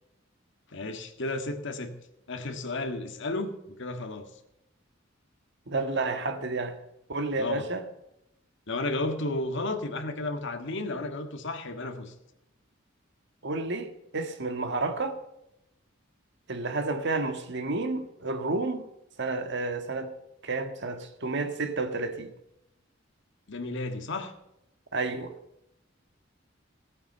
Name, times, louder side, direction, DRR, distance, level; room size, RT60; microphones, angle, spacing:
voice 1, 0.7-1.9 2.3-4.3 7.4-7.6 8.7-12.1 23.5-24.3, left 2 dB, 65° left, 1.7 m, -33 dB
voice 2, 5.7-6.8 7.1-7.9 13.4-15.2 16.5-18.9 19.2-20.1 20.4-22.3 24.9-25.3, right 3 dB, 60° right, 1.6 m, -30 dB
15.5 x 8.8 x 6.8 m
head